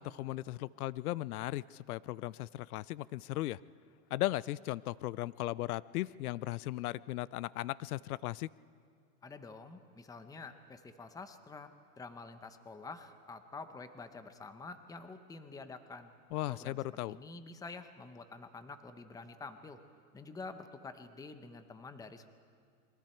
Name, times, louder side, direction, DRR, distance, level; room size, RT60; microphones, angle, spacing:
voice 1, 0.0-3.6 4.1-8.5 16.3-17.2, left 16 dB, 75° left, 20 dB, 0.6 m, -37 dB
voice 2, 9.2-16.1 16.5-16.8 17.1-19.8 20.1-22.3, left 3 dB, 10° left, 9 dB, 0.9 m, -48 dB
29.0 x 23.0 x 4.5 m, 2.3 s
hypercardioid pair, 125°, 44 cm